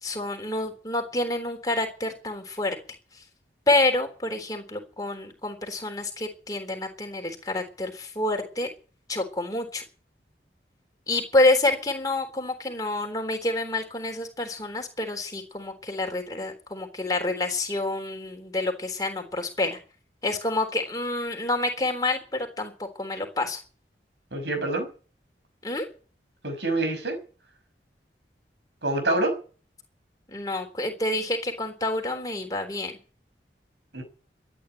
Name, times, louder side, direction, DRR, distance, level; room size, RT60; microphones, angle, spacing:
voice 1, 0.0-2.8 3.1-3.2 3.7-8.7 9.1-9.8 11.1-19.8 20.2-23.6 25.6-25.9 30.3-32.9, left 2 dB, 20° left, 4 dB, 3.7 m, -28 dB
voice 2, 24.3-24.9 26.4-27.2 28.8-29.3 33.9-34.0, right 2 dB, 80° right, 7 dB, 5.8 m, -26 dB
13.5 x 9.9 x 9.9 m, 0.37 s
head